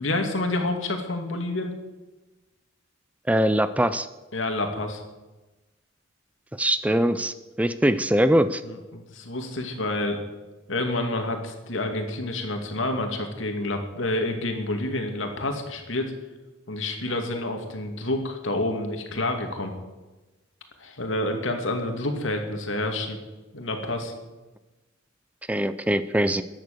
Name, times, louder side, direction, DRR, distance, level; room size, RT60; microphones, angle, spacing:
voice 1, 0.0-1.8 4.3-5.0 8.6-10.2 10.7-16.1 16.7-19.7 20.8-23.2 23.5-24.1, left 2 dB, 75° left, 4 dB, 2.6 m, -28 dB
voice 2, 3.3-4.1 6.6-8.6 25.5-26.4, right 1 dB, 5° right, 13 dB, 0.4 m, -22 dB
15.0 x 10.5 x 6.8 m, 1.1 s
head